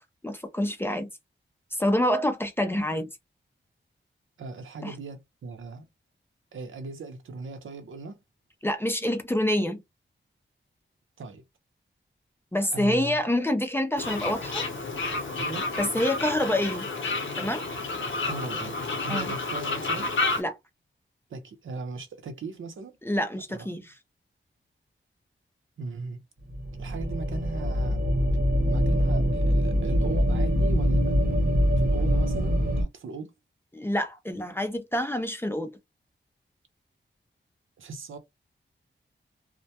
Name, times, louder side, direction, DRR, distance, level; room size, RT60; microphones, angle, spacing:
voice 1, 0.2-1.1 1.7-3.1 4.8-4.9 8.6-9.8 12.5-14.6 15.8-16.9 17.4-17.6 19.1-19.3 20.4-20.6 23.0-23.9 33.7-35.7, left 1 dB, 10° left, 0.4 m, -27 dB
voice 2, 4.4-5.9 6.5-8.2 11.2-11.4 12.7-13.2 15.4-15.7 18.3-20.1 21.3-22.9 23.3-23.7 25.8-26.3 26.8-28.1 28.7-31.4 31.8-33.3 37.8-38.2, right 3 dB, 80° right, 0.6 m, -38 dB
Fowl, 14.0-20.4, left 3 dB, 70° left, 0.8 m, -30 dB
sound 1, 26.5-32.8, equal, 45° right, 0.8 m, -24 dB
2.1 x 2.1 x 2.7 m
wide cardioid pair, 150°, 20 cm